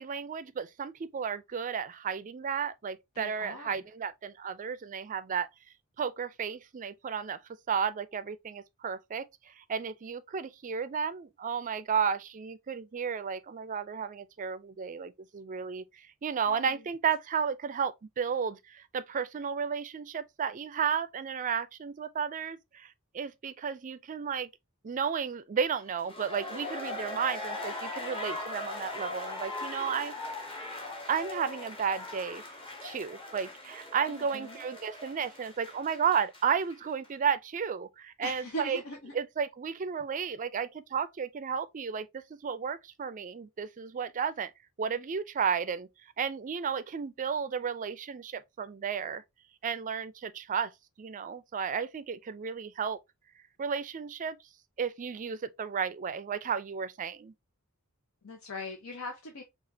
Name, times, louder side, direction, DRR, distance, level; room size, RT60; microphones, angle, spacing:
voice 1, 0.0-5.5 6.0-7.4 7.7-9.2 9.6-22.9 23.1-24.5 24.8-30.5 31.1-32.4 32.8-38.8 39.1-42.1 42.4-44.5 44.8-45.9 46.2-49.2 49.6-50.7 51.0-53.0 53.6-54.4 54.8-57.3, right 6 dB, 40° right, 0.4 m, -33 dB
voice 2, 3.1-3.8 16.5-16.8 34.1-34.6 38.2-39.1 58.2-59.4, left 1 dB, 80° left, 0.8 m, -41 dB
sound 1, 25.9-36.8 37.0-37.1, left 2 dB, 25° left, 1.1 m, -40 dB
4.9 x 2.4 x 2.6 m
head